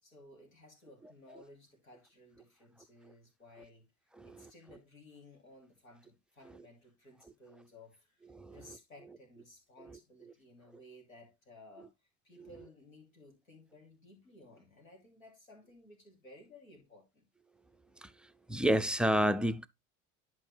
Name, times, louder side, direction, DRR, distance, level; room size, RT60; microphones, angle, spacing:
voice 1, 0.0-3.9 4.2-11.9 12.2-17.3, left 2 dB, 85° left, 2.9 m, -57 dB
voice 2, 4.2-4.5 8.3-8.8 12.3-12.5 18.0-18.1 18.5-19.7, equal, ahead, 0.4 m, -30 dB
11.0 x 4.7 x 3.3 m
figure-of-eight pair, 70°, 40 cm